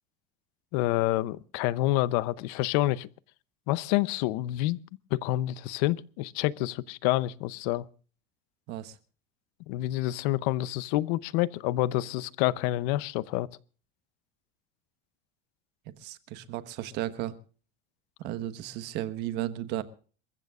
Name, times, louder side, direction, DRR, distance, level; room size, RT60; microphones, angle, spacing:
voice 1, 0.7-3.1 3.7-4.8 5.1-7.8 9.7-13.5, left 16 dB, 75° left, 0.7 m, -28 dB
voice 2, 16.0-17.3 18.2-19.8, right 13 dB, 60° right, 1.3 m, -34 dB
27.5 x 15.0 x 2.5 m
cardioid pair, 150°, 20 cm